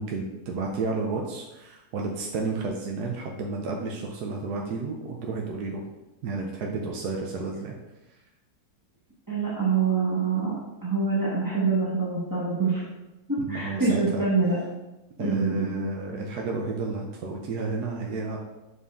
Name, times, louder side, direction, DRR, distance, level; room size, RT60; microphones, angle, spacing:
voice 1, 0.0-5.8 6.2-7.7 8.1-8.2 13.4-14.2 15.2-18.4, right 3 dB, 80° right, 0 dB, 1.2 m, -31 dB
voice 2, 9.3-10.5 10.8-12.8 13.3-14.6 15.2-15.9, right 4 dB, 15° right, -6 dB, 0.9 m, -25 dB
7.0 x 4.2 x 3.5 m, 1.0 s
omnidirectional pair, 1.7 m